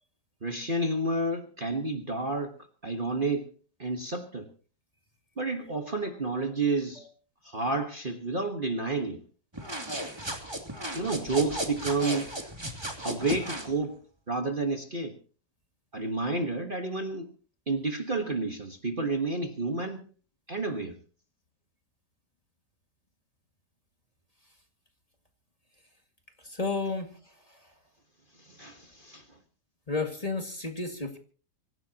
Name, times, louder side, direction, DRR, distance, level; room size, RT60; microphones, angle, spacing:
voice 1, 0.4-2.6 2.8-3.5 3.8-4.5 5.4-7.1 7.4-9.2 10.9-12.4 13.0-14.0 14.3-15.2 15.9-17.3 17.7-20.0 20.5-21.0 28.4-29.2, right 2 dB, 30° right, 4 dB, 1.5 m, -30 dB
sound 1, 9.5-13.7, right 1 dB, 15° right, 2.7 m, -35 dB
voice 2, 26.4-27.7 29.9-31.2, left 3 dB, 20° left, 4 dB, 2.1 m, -33 dB
25.0 x 16.0 x 2.9 m, 0.39 s
omnidirectional pair, 1.8 m